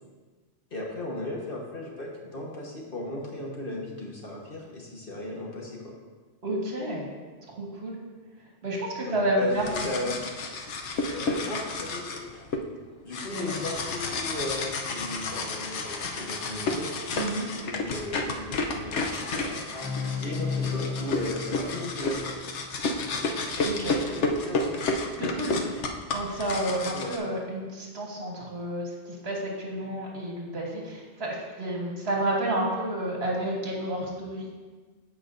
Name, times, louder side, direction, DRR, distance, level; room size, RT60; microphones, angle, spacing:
voice 1, 0.7-5.8 9.0-10.2 11.2-12.2 13.0-16.9 17.7-19.9 20.2-22.4 23.7-24.8 26.9-27.1, left 1 dB, 50° left, -2 dB, 1.5 m, -36 dB
voice 2, 6.4-7.1 7.6-8.0 8.6-9.7 13.3-13.5 17.1-17.5 23.6-24.0 25.2-25.6 26.1-34.5, right 1 dB, 65° right, -2 dB, 1.6 m, -30 dB
sound 1, 9.5-12.6 13.1-27.2, left 3 dB, 80° left, 1.1 m, -31 dB
sound 2, 19.7-23.2, left 5 dB, 35° left, 0.4 m, -34 dB
14.0 x 4.9 x 2.6 m, 1.4 s
omnidirectional pair, 1.2 m